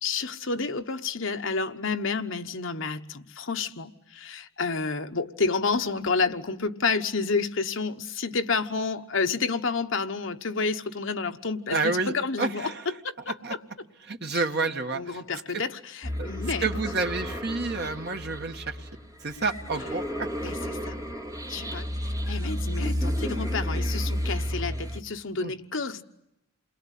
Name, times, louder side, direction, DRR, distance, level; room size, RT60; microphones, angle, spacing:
voice 1, 0.0-13.6 14.3-14.4 14.9-16.7 20.4-21.0 21.5-26.0, left 4 dB, 60° left, 1.2 m, -30 dB
voice 2, 11.7-12.8 13.4-13.5 14.1-15.2 16.2-16.3 16.6-18.8 19.2-20.3 25.4-25.5, right 3 dB, 50° right, 1.7 m, -29 dB
sound 1, 16.0-25.0, equal, 15° right, 2.2 m, -32 dB
29.0 x 21.5 x 8.3 m
head